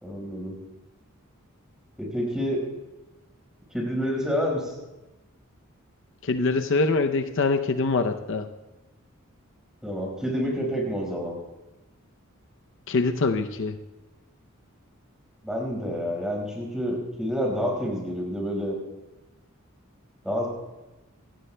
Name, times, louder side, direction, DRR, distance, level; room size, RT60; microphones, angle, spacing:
voice 1, 0.0-0.5 2.0-2.7 3.7-4.7 9.8-11.3 15.4-18.8 20.2-20.5, equal, 5° right, -1 dB, 4.8 m, -28 dB
voice 2, 6.2-8.5 12.9-13.8, left 3 dB, 65° left, 7 dB, 0.6 m, -24 dB
27.5 x 16.5 x 2.2 m, 1.1 s
head